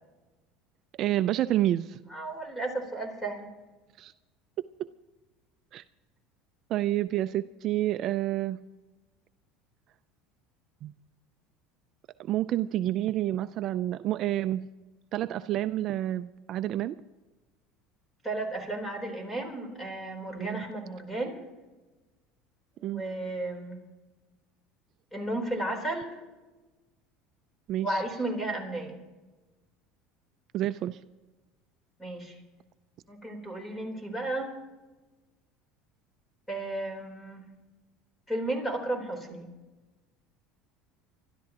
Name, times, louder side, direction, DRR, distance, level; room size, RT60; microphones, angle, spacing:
voice 1, 1.0-2.0 4.0-4.1 5.7-5.8 6.7-8.6 10.8-10.9 12.2-14.6 15.1-17.0 20.4-20.6 22.8-23.0 27.7-28.0 30.5-31.0, right 13 dB, 45° right, 12 dB, 0.4 m, -29 dB
voice 2, 2.1-3.5 18.2-21.4 22.8-23.8 25.1-26.2 27.8-29.0 32.0-32.4 33.1-34.6 36.5-37.4 38.3-39.5, right 2 dB, 10° left, 3 dB, 3.7 m, -33 dB
27.0 x 13.0 x 2.9 m, 1.2 s
supercardioid pair, 130°, 0 cm